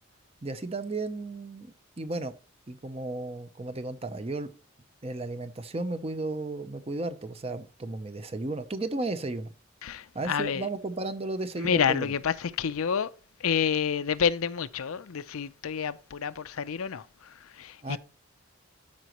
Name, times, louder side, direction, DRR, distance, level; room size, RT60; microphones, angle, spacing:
voice 1, 0.4-2.3 2.7-4.5 5.0-9.5 10.1-12.1 17.8-18.0, right 2 dB, 30° right, 0.6 m, -34 dB
voice 2, 9.8-10.7 11.6-13.1 13.4-18.0, left 7 dB, 85° left, 0.5 m, -29 dB
13.0 x 5.0 x 3.0 m
head